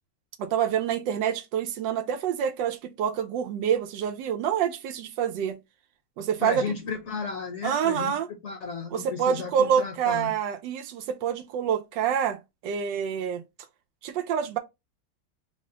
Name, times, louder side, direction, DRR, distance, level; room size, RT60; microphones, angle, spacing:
voice 1, 0.4-5.6 6.2-6.7 7.6-8.3 8.9-13.4 14.0-14.6, right 8 dB, 90° right, 1.3 m, -27 dB
voice 2, 6.4-8.2 8.4-10.3, left 5 dB, 55° left, 0.8 m, -34 dB
3.7 x 2.1 x 3.7 m
omnidirectional pair, 1.9 m